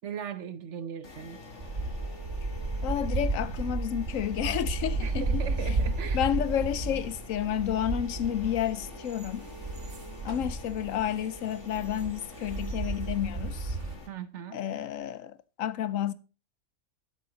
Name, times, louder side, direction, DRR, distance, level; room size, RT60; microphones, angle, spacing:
voice 1, 0.0-1.4 5.0-6.2 14.1-14.6, right 8 dB, 60° right, 1.1 m, -38 dB
sound 1, 1.0-14.1, left 2 dB, 60° left, 2.3 m, -46 dB
sound 2, 1.6-14.0, right 3 dB, 45° right, 1.5 m, -33 dB
voice 2, 2.8-5.7 6.1-9.5 10.2-13.8 14.5-16.1, left 10 dB, 75° left, 1.0 m, -31 dB
12.5 x 7.9 x 4.0 m
omnidirectional pair, 1.4 m